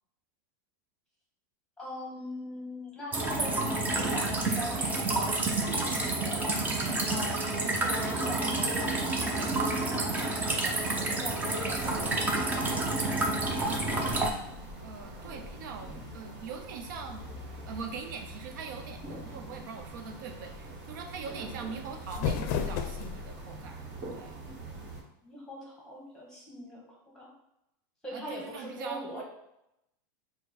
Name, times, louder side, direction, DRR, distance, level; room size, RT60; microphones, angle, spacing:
voice 1, 1.8-6.6 7.1-12.2 25.2-27.3 28.0-29.2, left 1 dB, 5° left, -3 dB, 1.3 m, -41 dB
sound 1, 3.1-14.3, right 2 dB, 15° right, 0.5 m, -29 dB
sound 2, 11.6-25.0, right 1 dB, 40° right, 1.4 m, -44 dB
voice 2, 12.8-14.5 14.8-17.2 17.7-24.4 28.1-29.2, right 5 dB, 70° right, 4 dB, 0.6 m, -43 dB
sound 3, 21.8-23.4, left 7 dB, 50° left, 0.5 m, -32 dB
4.5 x 2.2 x 4.2 m, 0.84 s
supercardioid pair, 150°, 11 cm